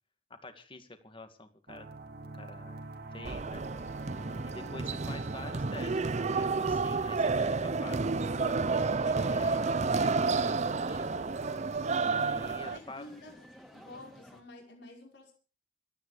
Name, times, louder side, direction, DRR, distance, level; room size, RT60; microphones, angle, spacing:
voice 1, 0.4-2.0 2.3-2.9 3.1-3.7 4.4-11.3 12.0-13.0, left 2 dB, 30° left, 8 dB, 2.3 m, -48 dB
sound 1, 1.7-12.6, right 3 dB, 55° right, 2.2 m, -43 dB
sound 2, 3.2-12.8, right 4 dB, 40° right, 0.7 m, -30 dB
voice 2, 4.4-5.0 12.4-13.5 13.7-15.3, left 2 dB, 70° left, 0 dB, 5.6 m, -50 dB
sound 3, 9.2-14.4, equal, ahead, 3.1 m, -55 dB
26.0 x 9.6 x 5.0 m, 0.38 s
head